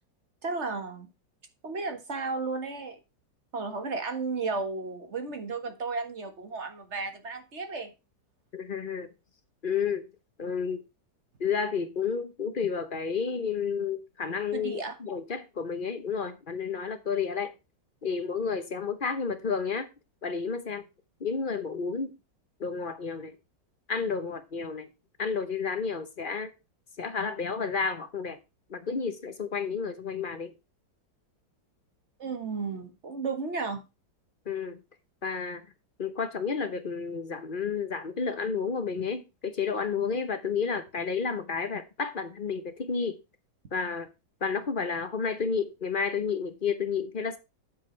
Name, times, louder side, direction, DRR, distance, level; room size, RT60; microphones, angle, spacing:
voice 1, 0.4-1.1 1.6-3.0 3.5-7.9 14.5-15.0 32.2-33.8, right 4 dB, 40° right, 1.7 m, -33 dB
voice 2, 8.5-9.1 9.6-10.0 10.4-10.8 11.4-17.5 18.0-19.9 20.2-20.8 21.2-22.1 22.6-23.3 23.9-24.9 25.2-26.5 27.0-28.4 28.7-30.5 34.5-34.8 35.2-35.6 36.0-43.2 43.7-44.1 44.4-47.4, left 5 dB, 40° left, 0.8 m, -31 dB
9.1 x 7.8 x 3.3 m
omnidirectional pair, 2.0 m